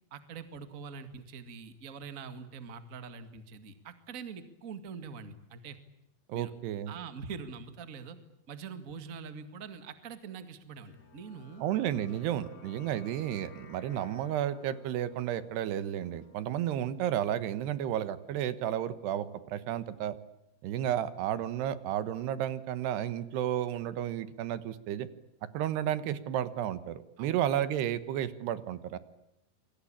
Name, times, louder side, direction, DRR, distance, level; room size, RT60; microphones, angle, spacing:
voice 1, 0.1-5.8 6.3-6.5 6.9-8.2 8.5-11.6 27.2-27.4, right 5 dB, 35° right, 9 dB, 1.4 m, -44 dB
voice 2, 6.3-6.9 11.6-20.1 20.6-25.1 25.5-29.0, right 11 dB, 85° right, 13 dB, 3.4 m, -32 dB
sound 1, 10.8-17.7, left 6 dB, 30° left, 2.1 m, -56 dB
28.0 x 23.5 x 8.7 m, 0.81 s
omnidirectional pair, 4.6 m